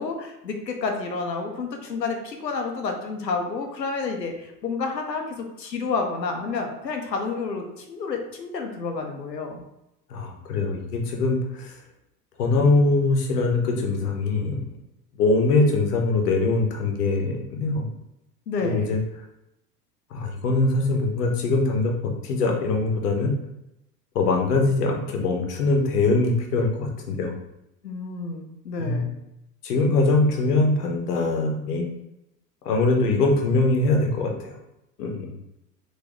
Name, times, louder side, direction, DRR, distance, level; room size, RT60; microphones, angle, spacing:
voice 1, 0.0-9.6 18.5-18.9 27.8-29.1, left 4 dB, 85° left, 3 dB, 0.8 m, -30 dB
voice 2, 10.1-11.8 12.4-14.6 15.1-17.8 18.6-19.0 20.1-23.3 24.1-27.4 28.8-29.0 29.6-31.8 32.6-34.5 35.0-35.3, left 3 dB, 65° left, 2 dB, 1.1 m, -22 dB
3.9 x 2.9 x 3.0 m, 0.87 s
figure-of-eight pair, 85°, 49 cm